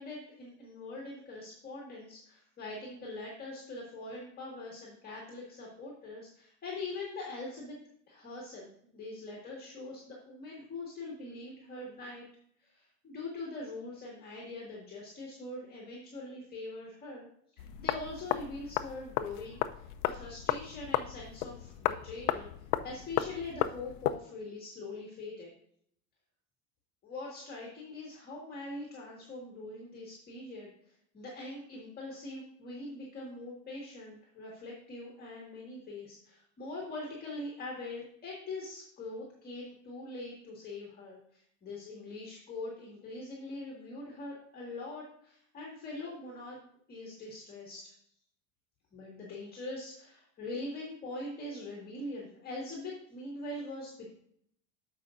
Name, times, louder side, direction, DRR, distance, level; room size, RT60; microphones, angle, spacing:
voice 1, 0.0-7.8 8.1-12.2 12.6-17.3 17.5-22.5 22.8-25.5 27.0-46.6 46.9-47.9 48.9-54.1, left 2 dB, 25° left, -3 dB, 1.8 m, -43 dB
sound 1, 17.6-24.2, left 13 dB, 80° left, 0.6 m, -34 dB
14.0 x 5.4 x 2.5 m, 0.66 s
supercardioid pair, 145°, 38 cm